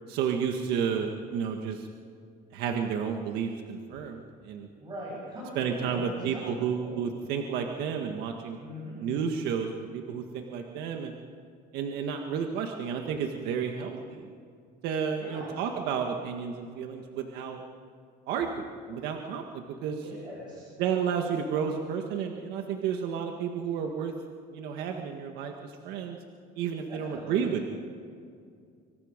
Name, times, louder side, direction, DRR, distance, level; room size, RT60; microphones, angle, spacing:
voice 1, 0.1-1.9 2.5-4.7 5.6-8.6 9.0-11.1 11.7-14.3 14.8-17.6 18.3-18.5 18.9-20.0 20.8-24.1 24.5-26.2 26.6-27.6, right 7 dB, 65° right, 3 dB, 1.8 m, -31 dB
voice 2, 4.8-6.9 8.6-9.0 15.2-15.6 20.0-20.7 26.9-27.5, equal, 25° right, -6 dB, 7.3 m, -41 dB
26.0 x 24.5 x 5.2 m, 2.3 s
cardioid pair, 160°, 18 cm